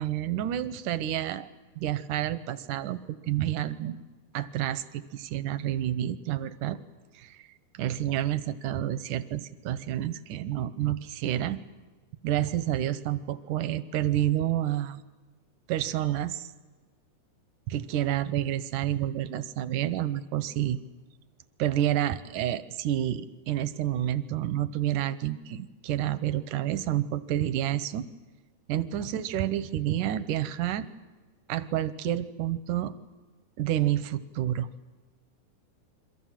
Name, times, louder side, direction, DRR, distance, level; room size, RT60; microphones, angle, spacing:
voice 1, 0.0-1.5 1.8-3.0 3.2-4.0 4.3-6.8 7.1-7.5 7.7-11.6 12.2-15.0 15.7-16.5 17.7-20.8 21.6-28.1 28.7-30.9 31.5-32.9 33.6-34.7, right 12 dB, 75° right, 14 dB, 2.0 m, -29 dB
29.5 x 23.0 x 7.4 m, 1.3 s
omnidirectional pair, 4.6 m